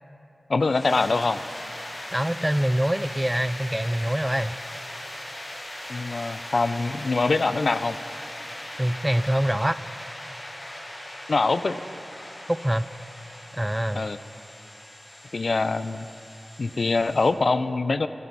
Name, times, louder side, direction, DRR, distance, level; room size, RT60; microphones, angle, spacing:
voice 1, 0.5-1.4 5.9-8.0 11.3-11.8 13.9-14.2 15.3-16.1 16.6-18.1, left 3 dB, 60° left, 12 dB, 0.5 m, -24 dB
sound 1, 0.6-17.3, left 1 dB, 40° left, 4.1 m, -39 dB
voice 2, 2.1-4.6 8.8-9.8 12.5-12.8 13.5-14.0, right 1 dB, 10° right, 14 dB, 0.4 m, -24 dB
23.5 x 11.5 x 4.1 m, 2.9 s
cardioid pair, 55°, 0 cm